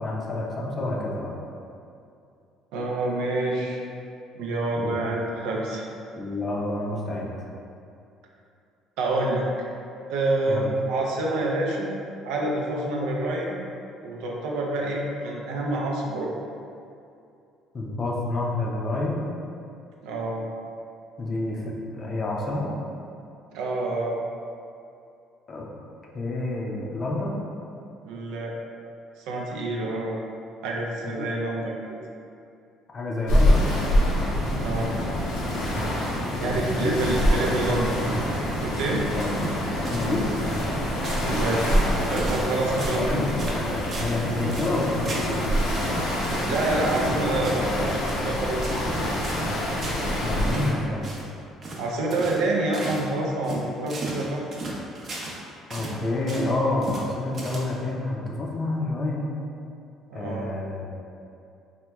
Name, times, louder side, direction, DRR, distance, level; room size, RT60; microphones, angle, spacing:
voice 1, 0.0-1.3 4.7-5.1 6.1-7.3 10.5-10.7 17.7-19.2 21.2-22.7 25.5-25.7 26.1-27.4 31.2-31.3 32.9-33.6 36.4-36.9 39.1-39.3 39.9-40.3 42.7-45.2 50.2-51.1 55.7-59.3 60.1-60.9, left 2 dB, 35° left, -3 dB, 0.5 m, -28 dB
voice 2, 2.7-3.8 4.3-5.9 9.0-9.4 10.1-11.9 12.2-13.6 14.0-16.3 20.0-20.5 23.5-24.2 28.0-28.5 29.3-30.2 30.6-31.8 34.5-34.9 36.4-38.2 38.6-39.1 41.2-41.6 42.1-43.2 46.4-48.8 51.8-54.5 60.1-60.5, right 2 dB, 85° right, -1 dB, 0.4 m, -27 dB
sound 1, 33.3-50.7, equal, 90° left, 0.7 m, -25 dB
sound 2, 38.7-39.6 39.8-40.2 40.4-40.7 41.0-41.3 41.6-42.5 42.8-43.1 43.4-44.2 44.5-45.4 45.7-45.9 46.2-46.5 46.9-47.7 48.0-48.3 48.6-48.9 49.2-49.5 49.8-50.1 50.4-50.7 51.0-51.3 51.6-51.8 52.1-52.4 52.7-53.1 53.4-55.4 55.7-56.5 56.8-57.1 57.3-57.9, right 2 dB, 45° right, 0.6 m, -37 dB
2.9 x 2.1 x 3.4 m, 2.6 s
cardioid pair, 105°, 0 cm